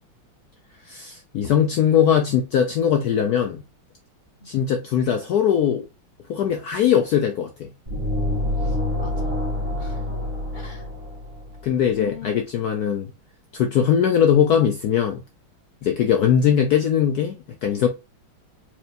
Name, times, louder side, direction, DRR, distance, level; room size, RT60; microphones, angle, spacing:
voice 1, 0.9-3.6 4.5-5.8 6.3-7.7 11.6-13.1 13.5-15.2 15.8-17.9, left 8 dB, 75° left, 0.9 m, -20 dB
sound 1, 7.9-11.7, left 1 dB, 15° right, 1.9 m, -27 dB
voice 2, 8.6-9.3 9.8-10.2 10.5-10.9 11.9-12.3 15.8-16.0, left 9 dB, 35° left, 0.8 m, -41 dB
4.6 x 3.2 x 2.5 m
omnidirectional pair, 2.3 m